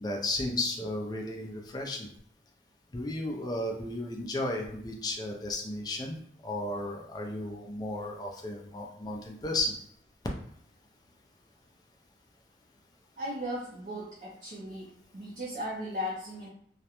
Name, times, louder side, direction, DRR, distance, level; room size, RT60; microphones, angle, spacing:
voice 1, 0.0-2.1 2.9-6.2 6.4-9.8, left 1 dB, 20° left, 1 dB, 0.3 m, -34 dB
voice 2, 13.2-16.5, equal, 45° right, -4 dB, 0.4 m, -37 dB
2.3 x 2.1 x 2.8 m, 0.67 s
head